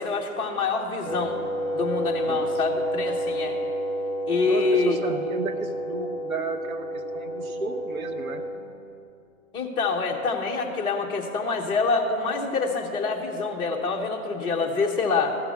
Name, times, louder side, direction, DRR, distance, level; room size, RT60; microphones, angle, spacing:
voice 1, 0.0-1.4 1.7-3.6 4.3-5.0 9.5-15.3, left 4 dB, 10° left, -1 dB, 0.8 m, -26 dB
Wind instrument woodwind instrument, 1.0-8.7, right 1 dB, 40° right, 2.4 m, -30 dB
voice 2, 4.4-8.4, right 3 dB, 70° right, 6 dB, 1.2 m, -33 dB
14.0 x 6.0 x 8.3 m, 2.6 s
figure-of-eight pair, 130°, 43 cm